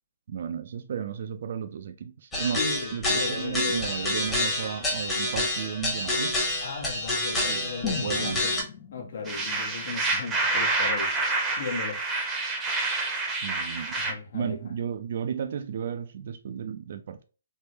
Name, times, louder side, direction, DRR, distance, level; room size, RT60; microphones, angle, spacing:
voice 1, 0.3-2.6 2.9-6.4 7.5-8.4 13.4-13.9 14.3-17.2, right 8 dB, 55° right, 0.4 m, -33 dB
sound 1, 2.3-8.6, left 2 dB, 10° left, 0.9 m, -28 dB
voice 2, 2.5-3.9 6.6-8.5 8.9-12.1 14.0-14.7, left 4 dB, 60° left, 1.0 m, -36 dB
sound 2, 7.8-11.8 12.1-12.2, left 8 dB, 30° left, 0.5 m, -40 dB
sound 3, 9.3-14.1, right 3 dB, 15° right, 0.7 m, -28 dB
3.5 x 2.1 x 2.9 m
hypercardioid pair, 150°, 0 cm